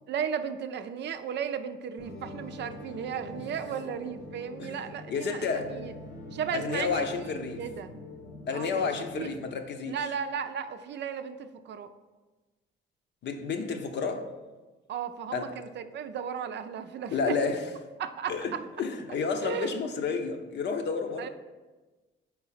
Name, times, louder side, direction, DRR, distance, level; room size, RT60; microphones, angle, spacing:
voice 1, 0.1-5.9 6.3-7.9 8.5-9.3 9.9-11.9 14.9-17.4 18.0-18.6 19.4-19.8 20.0-20.1 21.2-21.3, right 8 dB, 60° right, 0.5 m, -35 dB
sound 1, 2.0-9.6, left 1 dB, 80° left, 1.2 m, -45 dB
voice 2, 5.1-5.7 6.5-7.6 8.5-10.0 13.2-14.3 15.3-15.5 17.1-17.6 18.3-21.3, left 5 dB, 60° left, 0.7 m, -31 dB
4.7 x 4.1 x 5.6 m
cardioid pair, 90°, 20 cm